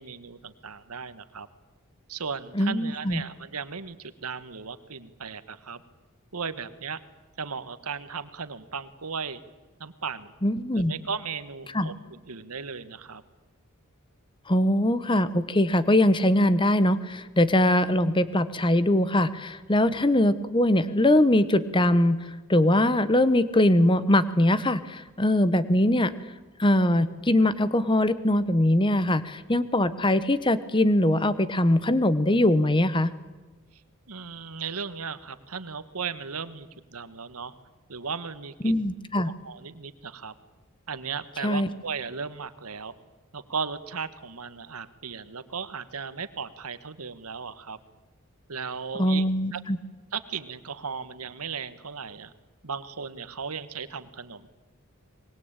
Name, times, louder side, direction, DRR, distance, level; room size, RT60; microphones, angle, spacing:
voice 1, 0.0-1.5 2.1-5.8 6.3-7.0 7.4-9.4 9.8-10.3 10.7-13.2 34.1-37.5 37.9-38.9 39.2-40.3 40.9-42.9 43.3-47.8 48.5-49.6 50.1-52.3 52.6-54.5, right 5 dB, 85° right, 13 dB, 1.5 m, -36 dB
voice 2, 2.5-3.2 10.4-10.9 11.7-11.9 14.5-22.2 22.5-26.1 26.6-33.1 38.6-39.3 41.4-41.7 49.0-49.8, left 1 dB, 20° left, 14 dB, 1.1 m, -22 dB
24.5 x 21.0 x 8.9 m, 1.2 s
head